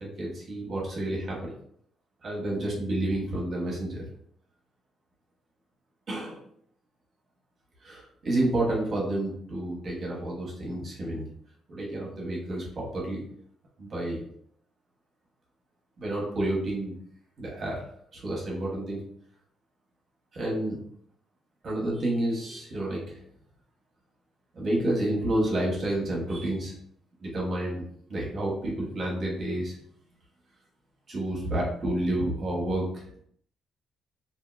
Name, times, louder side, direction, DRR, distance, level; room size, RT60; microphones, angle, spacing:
voice 1, 0.0-1.5 2.2-4.0 6.1-6.4 7.8-11.3 11.7-13.2 13.8-14.2 16.0-16.9 17.4-17.9 18.1-19.0 20.3-20.8 21.6-23.2 24.5-26.7 27.2-27.8 28.1-29.8 31.1-33.0, right 1 dB, 45° right, -3 dB, 1.1 m, -30 dB
2.8 x 2.5 x 2.4 m, 0.64 s
cardioid pair, 90°, 0 cm